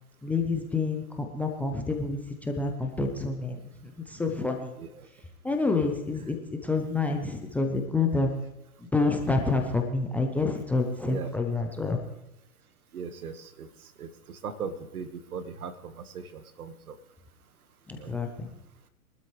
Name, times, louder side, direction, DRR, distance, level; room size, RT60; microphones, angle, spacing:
voice 1, 0.2-4.7 5.4-8.4 8.9-12.0 17.9-18.5, left 3 dB, 5° left, 2 dB, 0.5 m, -28 dB
voice 2, 12.9-13.7 14.0-16.9 17.9-18.1, right 6 dB, 75° right, 11 dB, 1.6 m, -39 dB
23.0 x 12.5 x 3.2 m, 0.90 s
hypercardioid pair, 125°, 44 cm